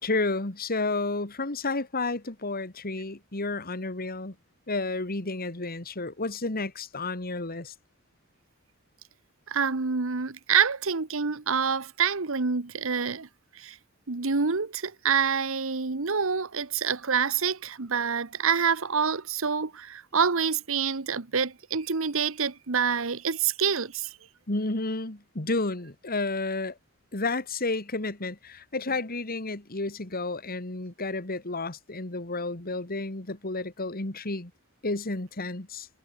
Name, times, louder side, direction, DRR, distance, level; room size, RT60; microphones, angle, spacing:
voice 1, 0.0-4.4 4.7-7.7 24.5-26.8 27.1-34.5 34.8-35.9, left 3 dB, 45° left, 2.4 m, -31 dB
voice 2, 9.5-13.3 13.5-13.8 14.1-24.1, right 6 dB, 70° right, 1.2 m, -27 dB
head